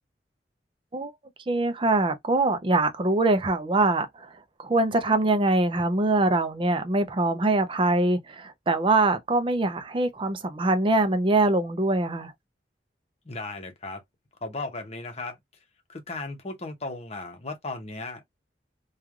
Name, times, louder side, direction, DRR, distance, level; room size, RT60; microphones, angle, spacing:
voice 1, 1.5-4.3 4.6-12.3, right 2 dB, 30° right, 0.5 m, -23 dB
voice 2, 13.2-14.0 14.4-15.4 15.9-18.2, left 3 dB, 40° left, 0.9 m, -36 dB
3.1 x 2.3 x 2.4 m
head